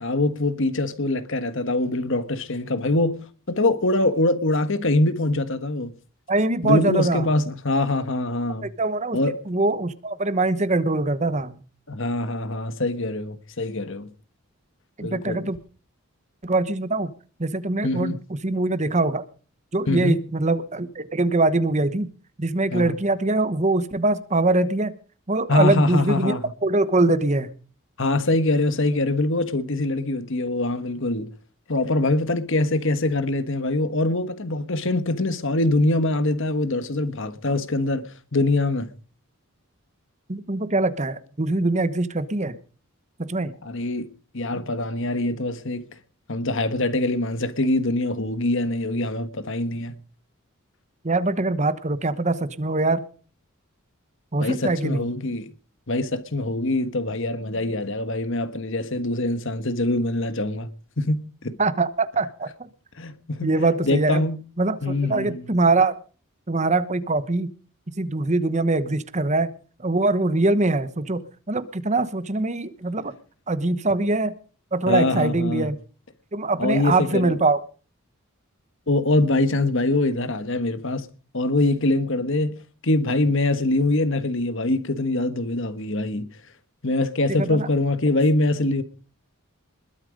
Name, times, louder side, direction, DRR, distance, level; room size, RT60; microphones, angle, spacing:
voice 1, 0.0-5.9 6.6-8.7 9.1-9.4 11.9-14.1 15.0-15.5 17.8-18.2 19.9-20.2 22.7-22.9 25.5-26.4 28.0-31.3 31.7-38.9 43.6-45.8 46.3-49.9 54.4-55.5 55.9-60.7 61.0-61.6 63.0-64.4 64.8-65.4 74.9-75.7 76.6-77.4 78.9-81.1 81.3-86.3 86.8-88.8, left 2 dB, 60° left, 1.5 m, -24 dB
voice 2, 6.3-7.3 8.6-9.2 9.5-11.6 15.0-15.6 16.4-17.1 17.4-18.2 18.4-19.2 19.7-22.1 22.4-24.9 25.3-27.5 40.3-42.6 43.2-43.5 51.0-53.0 54.3-55.1 61.6-62.7 63.4-64.2 64.6-64.8 65.1-66.0 66.5-67.5 68.0-69.5 69.8-73.1 73.5-74.3 74.7-75.8 76.3-77.6 87.3-87.7, right 2 dB, 35° right, 1.0 m, -23 dB
21.0 x 8.8 x 5.2 m
head